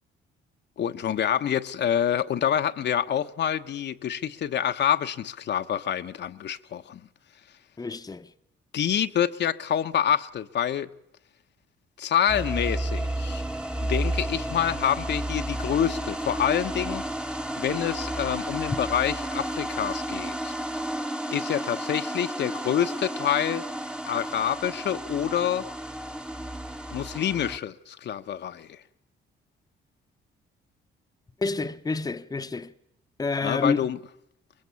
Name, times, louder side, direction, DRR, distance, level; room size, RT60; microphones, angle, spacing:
voice 1, 0.8-7.0 8.7-10.9 12.0-13.4 13.8-17.0 17.6-20.5 21.3-23.6 24.1-25.7 26.9-28.8 33.4-34.0, left 9 dB, 60° left, 0.9 m, -27 dB
voice 2, 7.8-8.3 31.4-32.7 33.2-33.9, left 4 dB, 20° left, 0.8 m, -28 dB
sound 1, 12.3-27.6, right 1 dB, 5° right, 1.0 m, -32 dB
23.5 x 21.0 x 7.0 m
cardioid pair, 90°, 20 cm